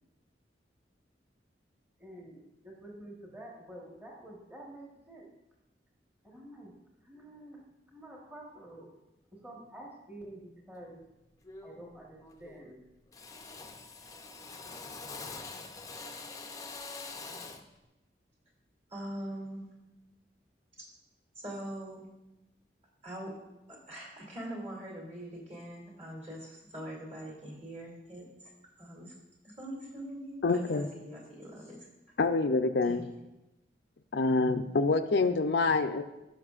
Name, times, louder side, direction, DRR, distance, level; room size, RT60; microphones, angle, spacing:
voice 1, 2.0-5.3 6.2-6.7 7.0-7.6 7.9-8.9 9.4-11.0 11.6-12.8, right 1 dB, 10° right, -3 dB, 1.3 m, -48 dB
Drill, 10.8-11.0 11.4-12.0 12.2-12.8 13.1-17.7, left 4 dB, 20° left, 0.5 m, -45 dB
voice 2, 18.9-19.7 21.4-22.1 23.0-23.3 23.7-28.5 28.8-29.1 29.4-31.8 32.8-33.0, right 1 dB, 40° right, -2 dB, 2.6 m, -42 dB
voice 3, 30.4-30.9 32.2-33.1 34.1-36.0, left 3 dB, 70° left, 8 dB, 0.5 m, -26 dB
15.5 x 5.8 x 2.4 m, 0.98 s
head